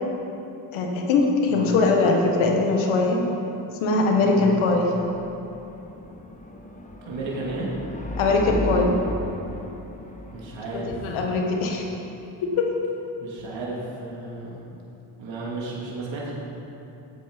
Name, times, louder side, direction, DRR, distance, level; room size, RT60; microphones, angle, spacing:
voice 1, 0.7-3.2 3.8-4.9 8.2-8.9 11.0-11.8 12.6-12.7, left 3 dB, 85° left, 1 dB, 1.7 m, -21 dB
sound 1, 4.8-13.0, left 1 dB, 15° left, 1.7 m, -35 dB
voice 2, 7.1-7.7 10.3-11.0 13.2-14.6 15.2-16.3, right 2 dB, 70° right, -5 dB, 2.6 m, -33 dB
13.5 x 8.7 x 5.3 m, 2.9 s
supercardioid pair, 55°, 47 cm